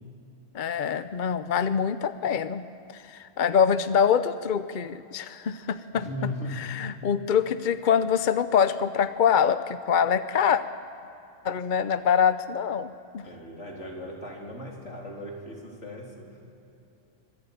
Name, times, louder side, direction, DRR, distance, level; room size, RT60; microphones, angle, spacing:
voice 1, 0.5-2.7 2.9-10.6 11.4-13.3, left 7 dB, 50° left, 12 dB, 0.7 m, -25 dB
voice 2, 5.9-6.7 13.2-16.4, left 1 dB, 65° left, -1 dB, 3.8 m, -37 dB
25.0 x 16.0 x 9.1 m, 2.8 s
omnidirectional pair, 1.3 m